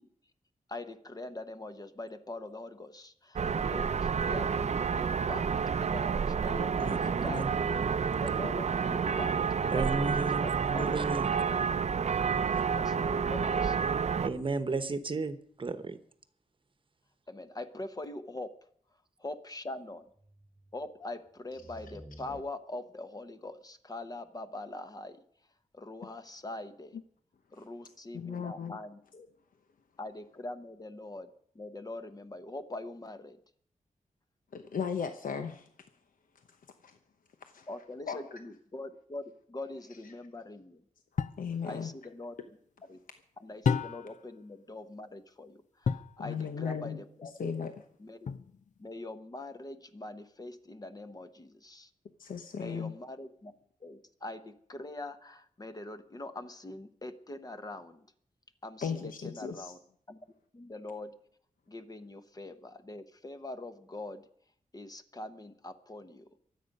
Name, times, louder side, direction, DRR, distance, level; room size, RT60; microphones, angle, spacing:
voice 1, 0.7-5.5 5.8-7.6 8.2-10.1 10.4-10.9 12.6-13.9 17.3-18.5 19.2-20.0 20.7-25.2 25.7-27.0 27.5-29.3 30.0-31.3 31.5-33.4 37.7-40.8 41.6-42.4 42.9-43.0 43.4-47.3 48.0-48.3 48.8-51.9 52.5-53.5 53.8-58.0 58.6-59.8 60.1-60.2 60.5-61.2 61.7-64.3 64.7-66.3, left 2 dB, 25° left, 8 dB, 1.0 m, -43 dB
sound 1, 3.4-14.3, right 6 dB, 55° right, 0.6 m, -29 dB
sound 2, 5.1-14.9 20.2-20.8 21.5-22.4, right 1 dB, 15° right, 1.4 m, -47 dB
voice 2, 6.8-7.5 9.7-11.3 14.2-16.0, right 3 dB, 40° right, 11 dB, 1.1 m, -33 dB
voice 3, 28.1-28.7 34.5-35.7 36.5-36.6 36.8-37.0 37.4-37.7 38.1-38.4 41.1-41.9 46.2-47.8 52.2-52.9 58.8-59.7, left 6 dB, 80° left, 7 dB, 0.9 m, -37 dB
sound 3, 41.2-41.5 43.6-44.3 45.8-46.2 48.3-48.8, left 6 dB, 60° left, 0.6 m, -31 dB
23.5 x 8.4 x 5.4 m, 0.62 s
wide cardioid pair, 155°, 14 cm